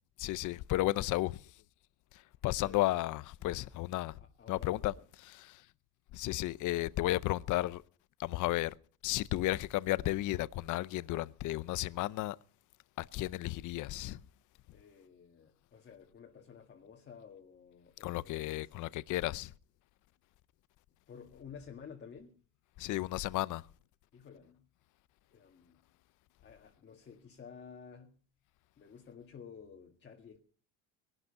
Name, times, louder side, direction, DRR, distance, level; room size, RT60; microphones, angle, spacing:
voice 1, 0.2-1.4 2.4-4.2 4.5-4.9 5.4-5.6 6.1-7.8 8.2-8.7 9.0-12.4 13.0-14.2 18.0-19.5 22.8-23.6, left 16 dB, 55° left, 0.7 m, -33 dB
voice 2, 4.2-5.1 14.7-18.8 21.1-22.4 24.1-24.6 25.3-25.8 26.4-28.2 28.8-30.4, left 6 dB, 30° left, 1.9 m, -53 dB
19.5 x 12.0 x 5.8 m
cardioid pair, 140°, 36 cm